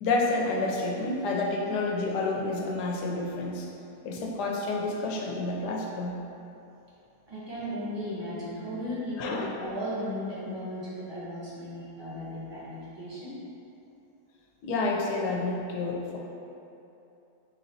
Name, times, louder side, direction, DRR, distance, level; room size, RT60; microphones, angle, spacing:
voice 1, 0.0-3.7 4.0-6.2 9.2-9.5 14.6-16.2, left 3 dB, 85° left, -1 dB, 1.2 m, -29 dB
voice 2, 7.3-13.3, equal, 20° right, -10 dB, 0.8 m, -36 dB
4.3 x 4.2 x 2.7 m, 2.8 s
omnidirectional pair, 1.7 m